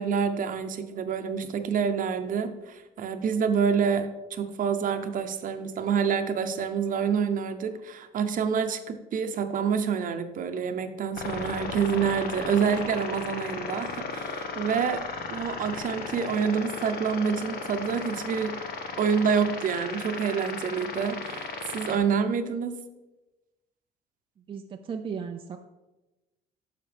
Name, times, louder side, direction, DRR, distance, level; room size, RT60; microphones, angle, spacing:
voice 1, 0.0-15.0 15.3-18.5 19.0-22.8, right 6 dB, 55° right, 8 dB, 0.9 m, -27 dB
sound 1, 11.2-22.0, left 4 dB, 65° left, 1.3 m, -35 dB
voice 2, 24.4-25.6, right 6 dB, 30° right, 4 dB, 0.5 m, -36 dB
10.0 x 6.6 x 3.5 m, 1.0 s
cardioid pair, 110°, 17 cm